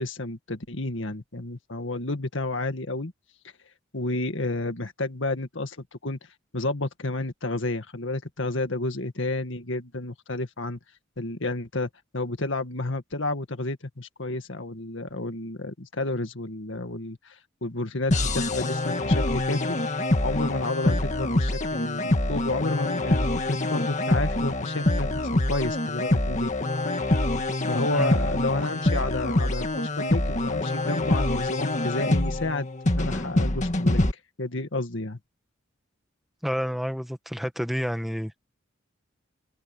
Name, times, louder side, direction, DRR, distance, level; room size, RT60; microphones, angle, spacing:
voice 1, 0.0-3.1 3.9-5.8 6.0-6.2 6.5-10.8 11.2-20.0 20.2-26.5 26.9-27.0 27.7-34.0 34.4-35.2, left 2 dB, 70° left, 2.0 m, -31 dB
sound 1, 18.1-34.1, left 1 dB, 40° left, 1.8 m, -25 dB
voice 2, 36.4-38.5, equal, ahead, 1.6 m, -29 dB
head